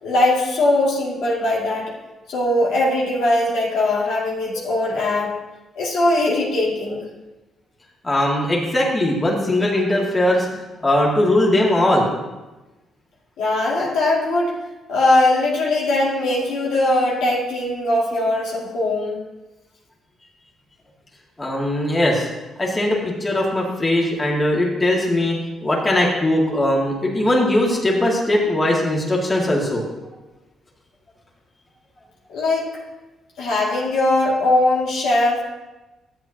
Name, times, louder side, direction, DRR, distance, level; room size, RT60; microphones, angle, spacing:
voice 1, 0.0-1.9 2.3-5.4 5.7-7.1 13.4-14.5 14.9-19.2 32.3-32.7 33.4-35.4, left 2 dB, 85° left, -5 dB, 2.4 m, -20 dB
voice 2, 8.0-12.1 21.4-22.3 22.6-29.9, left 1 dB, 20° left, -3 dB, 2.1 m, -20 dB
12.5 x 8.2 x 2.9 m, 1.1 s
cardioid pair, 90°, 0 cm